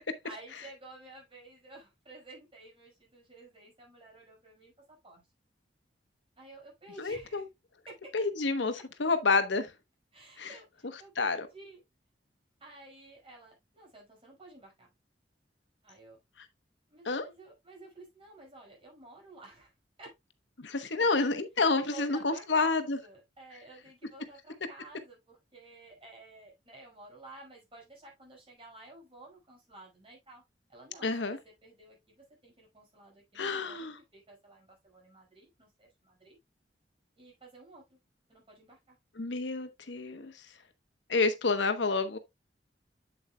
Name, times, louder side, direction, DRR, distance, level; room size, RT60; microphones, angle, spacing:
voice 1, 0.2-5.3 6.4-7.5 7.9-8.1 10.1-11.8 12.6-14.9 15.8-16.2 16.9-19.7 20.0-20.1 20.7-21.3 21.8-30.4 30.7-36.4 37.2-38.0 38.3-39.0, right 2 dB, 30° right, 5.5 m, -52 dB
voice 2, 7.0-7.4 8.1-9.7 10.4-10.5 11.2-11.5 17.0-17.3 20.6-23.0 31.0-31.4 33.4-34.0 39.2-40.3 41.1-42.2, left 3 dB, 80° left, 1.1 m, -29 dB
8.0 x 7.9 x 2.3 m
head